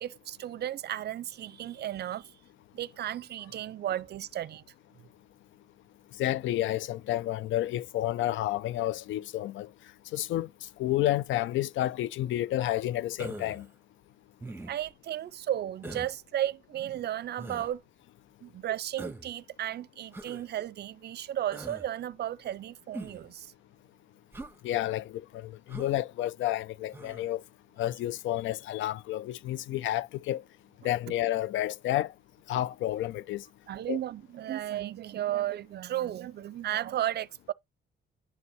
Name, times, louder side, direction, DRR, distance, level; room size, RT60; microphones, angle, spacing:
voice 1, 0.0-2.3 2.7-4.6 14.7-17.8 18.4-23.5 33.7-37.5, right 12 dB, 55° right, 0.5 m, -34 dB
voice 2, 6.1-9.7 10.1-13.7 24.6-27.4 27.8-30.4 30.8-32.1 32.5-33.4 33.9-34.0, left 14 dB, 75° left, 0.4 m, -30 dB
Human voice, 13.2-13.7 14.4-14.9 15.8-16.1 17.4-17.7 19.0-19.3 20.1-20.4 21.5-21.9 22.9-23.3 24.3-24.6 25.7-26.0 26.9-27.3, right 2 dB, 10° right, 1.2 m, -42 dB
11.0 x 6.8 x 2.9 m
cardioid pair, 90°, 20 cm